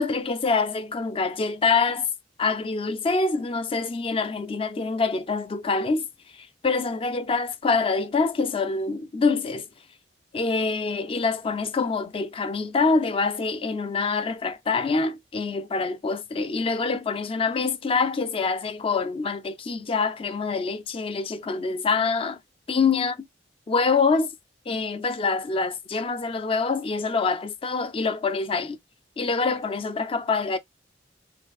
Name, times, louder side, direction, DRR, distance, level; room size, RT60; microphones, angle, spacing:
voice 1, 0.0-2.1 2.4-6.0 6.6-9.7 10.3-22.4 22.7-23.2 23.7-24.3 24.7-28.8 29.2-30.6, left 4 dB, 30° left, 0.4 m, -25 dB
4.6 x 2.5 x 2.3 m
head